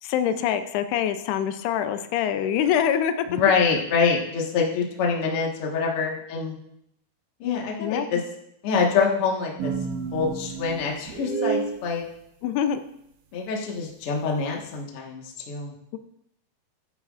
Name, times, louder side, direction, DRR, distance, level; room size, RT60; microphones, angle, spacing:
voice 1, 0.0-3.4 7.8-8.1 12.4-12.8, left 9 dB, 85° left, 9 dB, 2.7 m, -25 dB
voice 2, 3.3-6.6 7.4-8.2 8.6-9.7 10.1-12.0 13.3-15.7, left 5 dB, 50° left, -1 dB, 1.8 m, -25 dB
sound 1, 9.6-11.8, right 5 dB, 65° right, 2.5 m, -29 dB
13.5 x 11.5 x 2.5 m, 0.75 s
omnidirectional pair, 4.6 m